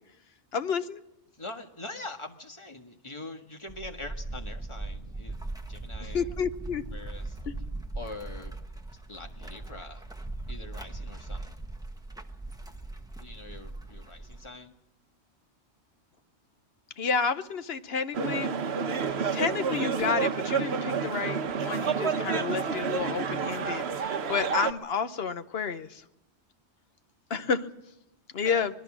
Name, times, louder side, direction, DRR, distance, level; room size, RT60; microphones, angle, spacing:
voice 1, 0.5-1.0 6.1-6.8 7.5-7.6 17.0-18.6 19.0-26.0 27.3-27.7 28.3-28.7, left 6 dB, 65° left, 11 dB, 1.2 m, -30 dB
voice 2, 1.3-5.4 5.7-6.3 6.9-7.5 7.9-8.6 8.9-10.1 10.5-11.6 13.2-14.7 28.4-28.7, left 2 dB, 25° left, 5 dB, 1.6 m, -43 dB
sound 1, 3.7-14.5, right 2 dB, 5° right, 1.2 m, -39 dB
sound 2, 18.1-24.7, right 6 dB, 70° right, 1.2 m, -29 dB
25.0 x 20.5 x 6.2 m, 0.86 s
omnidirectional pair, 1.1 m